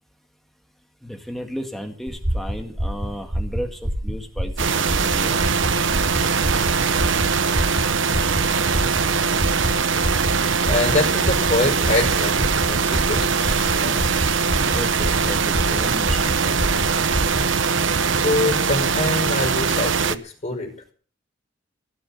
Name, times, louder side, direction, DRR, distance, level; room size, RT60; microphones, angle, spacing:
voice 1, 1.0-5.4 14.7-16.8, equal, ahead, 4 dB, 2.1 m, -34 dB
sound 1, 2.1-17.5, equal, 40° right, 4.8 m, -27 dB
sound 2, 4.6-20.2, right 5 dB, 75° right, 0.9 m, -21 dB
voice 2, 10.7-14.0 18.2-20.7, left 2 dB, 35° left, 2 dB, 5.4 m, -25 dB
sound 3, 13.2-14.8, right 3 dB, 90° right, 3.8 m, -37 dB
17.5 x 7.8 x 8.7 m, 0.43 s
head